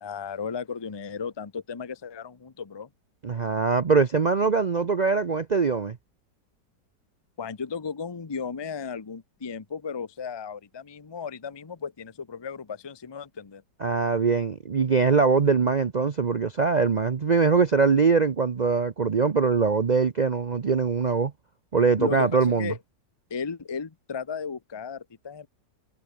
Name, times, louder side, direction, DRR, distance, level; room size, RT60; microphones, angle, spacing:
voice 1, 0.0-2.9 7.4-13.6 22.0-22.8 23.3-25.5, left 6 dB, 25° left, 0.6 m, -35 dB
voice 2, 3.2-6.0 13.8-21.3 21.7-22.7, right 5 dB, 90° right, 0.3 m, -22 dB
omnidirectional pair, 1.9 m